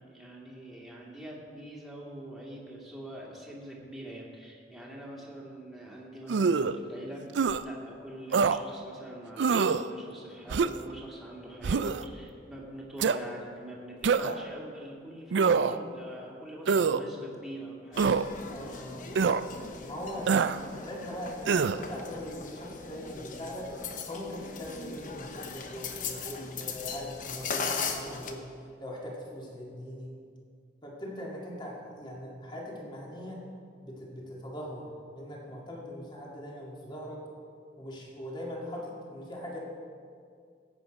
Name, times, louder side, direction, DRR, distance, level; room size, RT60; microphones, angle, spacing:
voice 1, 0.0-18.0 20.2-20.5, right 1 dB, ahead, -4 dB, 2.1 m, -44 dB
sound 1, 6.3-6.8 7.3-7.6 8.3-8.6 9.4-9.8 10.5-10.9 11.6-12.0 13.0-13.2 14.0-14.4 15.3-15.8 16.7-17.0 18.0-18.2 19.2-19.4 20.3-20.6 21.5-21.8, right 5 dB, 75° right, 0.4 m, -25 dB
sound 2, 17.9-28.3, left 5 dB, 45° left, 0.9 m, -39 dB
voice 2, 18.5-19.3 19.8-23.7 24.1-28.4 28.8-30.1 30.8-33.4 33.8-37.2 37.8-39.6, left 1 dB, 25° left, -3 dB, 2.1 m, -41 dB
16.0 x 8.4 x 5.2 m, 2.2 s
head